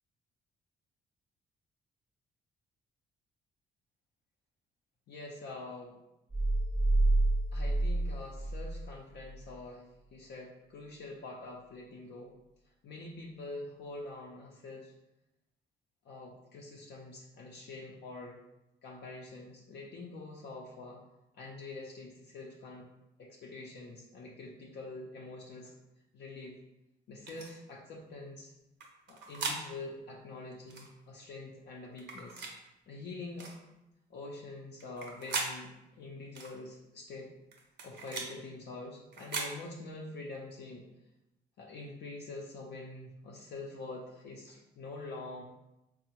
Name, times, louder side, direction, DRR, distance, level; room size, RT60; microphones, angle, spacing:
voice 1, 5.1-6.0 7.5-12.3 12.8-14.9 16.0-18.4 18.8-21.0 21.3-22.9 23.2-25.7 26.1-26.5 27.1-28.5 29.1-32.4 32.9-33.5 34.1-37.3 37.8-40.8 41.6-45.4, left 2 dB, 60° left, -2 dB, 0.5 m, -45 dB
sound 1, 6.3-8.9 9.2-9.3, right 2 dB, 10° right, 0.5 m, -28 dB
sound 2, 27.3-27.5 28.8-29.6 30.7-30.9 32.0-32.6 33.4-33.6 34.8-35.5 36.4-36.5 37.5-38.3 39.1-39.5, right 4 dB, 60° right, 0.6 m, -38 dB
3.5 x 2.0 x 2.8 m, 0.92 s
cardioid pair, 90°, 20 cm